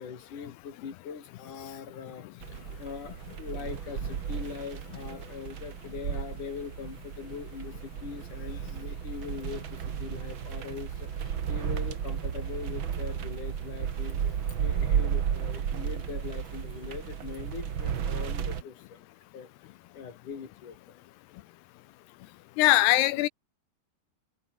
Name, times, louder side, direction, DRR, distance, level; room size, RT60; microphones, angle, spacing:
voice 1, 0.0-19.0 19.3-19.5 19.9-21.1, left 6 dB, 50° left, 4.9 m, -42 dB
sound 1, 2.4-18.6, right 8 dB, 65° right, 1.2 m, -33 dB
voice 2, 22.6-23.3, left 16 dB, 85° left, 2.9 m, -21 dB
omnidirectional pair, 4.6 m